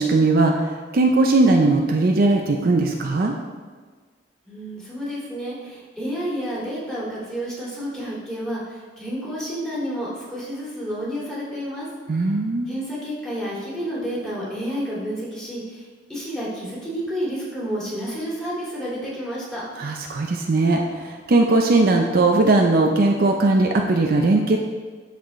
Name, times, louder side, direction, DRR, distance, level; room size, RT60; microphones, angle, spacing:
voice 1, 0.0-3.4 12.1-12.7 19.8-24.6, right 2 dB, 50° right, 2 dB, 0.5 m, -19 dB
voice 2, 4.4-11.9 12.7-19.6, equal, 5° left, -8 dB, 2.2 m, -30 dB
12.5 x 4.2 x 3.1 m, 1.4 s
head